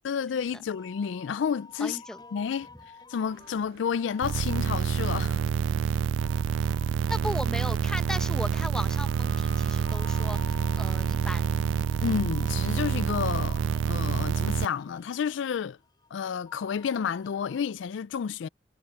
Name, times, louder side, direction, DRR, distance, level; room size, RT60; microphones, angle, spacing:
voice 1, 0.0-2.0 2.3-2.7 3.1-5.4 12.0-13.6 13.8-15.8 16.1-18.5, left 7 dB, 80° left, 0.4 m, -30 dB
sound 1, 0.7-17.7, left 4 dB, 25° left, 7.4 m, -50 dB
voice 2, 1.8-2.2 7.1-11.4, equal, 5° left, 0.9 m, -36 dB
Engine / Mechanisms, 3.3-10.6, right 3 dB, 55° right, 2.3 m, -55 dB
sound 2, 4.2-14.7, right 7 dB, 85° right, 0.3 m, -27 dB
head